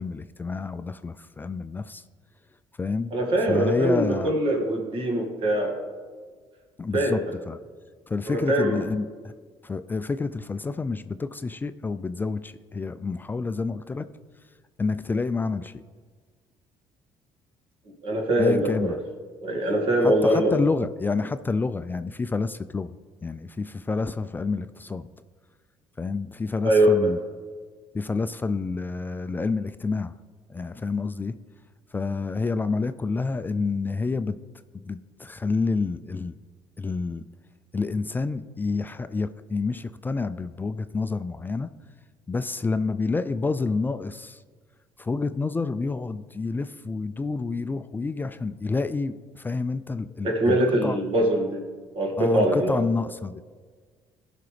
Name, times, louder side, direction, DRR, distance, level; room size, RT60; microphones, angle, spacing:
voice 1, 0.0-2.0 2.8-3.1 3.5-4.3 6.8-7.2 7.5-7.6 8.1-9.1 9.6-14.1 14.8-15.8 18.4-19.0 20.0-22.9 23.2-25.1 26.0-27.2 27.9-30.1 30.5-31.3 31.9-34.4 34.8-36.3 36.8-37.2 37.7-41.7 42.3-44.4 45.0-51.0 52.2-53.4, left 4 dB, 20° left, 12 dB, 0.3 m, -28 dB
voice 2, 3.1-5.8 6.9-7.3 8.3-8.8 18.0-19.0 19.4-20.5 26.6-27.1 50.2-51.6 51.9-52.8, right 1 dB, 60° right, 0 dB, 2.0 m, -23 dB
15.5 x 5.8 x 3.3 m, 1.5 s
supercardioid pair, 85°, 10 cm